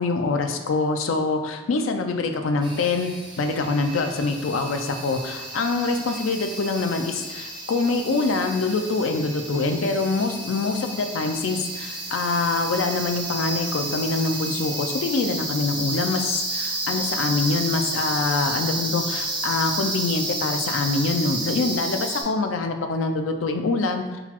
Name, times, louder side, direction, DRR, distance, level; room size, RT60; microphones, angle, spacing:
voice 1, 0.0-24.0, left 3 dB, 90° left, 5 dB, 0.4 m, -25 dB
sound 1, 2.6-22.2, right 2 dB, 25° right, 0.7 m, -31 dB
3.9 x 2.4 x 4.3 m, 1.2 s
head